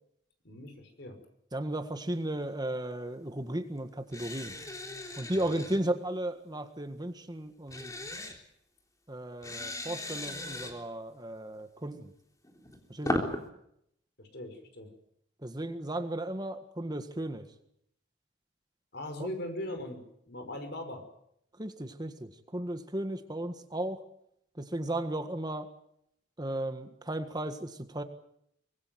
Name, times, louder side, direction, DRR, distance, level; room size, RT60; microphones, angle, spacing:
voice 1, 0.4-1.2 13.0-13.4 14.2-14.9 18.9-21.0, left 1 dB, 60° left, 7 dB, 5.5 m, -40 dB
voice 2, 1.5-4.5 5.2-7.9 9.1-12.1 12.9-13.2 15.4-17.5 19.2-19.3 21.6-24.0 24.6-25.7 26.4-28.0, right 1 dB, 20° right, 8 dB, 1.6 m, -35 dB
sound 1, 4.1-5.8 7.7-8.4 9.4-10.7 12.4-13.4, left 1 dB, 20° left, 3.5 m, -36 dB
24.5 x 21.0 x 7.8 m, 0.75 s
head